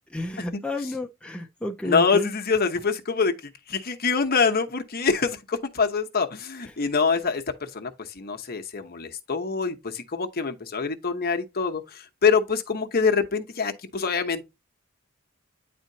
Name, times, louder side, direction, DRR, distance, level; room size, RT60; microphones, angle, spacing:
voice 1, 0.1-2.3, left 1 dB, 5° left, 0.5 m, -31 dB
voice 2, 1.8-3.3 3.7-7.9 8.2-14.5, left 5 dB, 45° left, 1.0 m, -25 dB
9.3 x 4.2 x 2.8 m
head